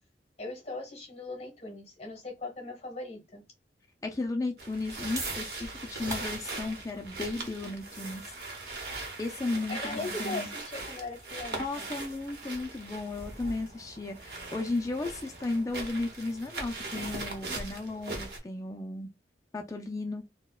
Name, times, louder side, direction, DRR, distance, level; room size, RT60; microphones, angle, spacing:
voice 1, 0.4-3.4 9.7-11.9, left 2 dB, 35° left, 1.2 m, -39 dB
voice 2, 4.0-8.4 9.2-10.5 11.6-19.1 19.5-20.2, left 2 dB, 20° left, 0.3 m, -34 dB
sound 1, 4.6-18.4, right 2 dB, 60° right, 0.8 m, -40 dB
sound 2, 5.1-11.4, right 2 dB, 20° right, 0.7 m, -45 dB
4.2 x 2.1 x 2.2 m
head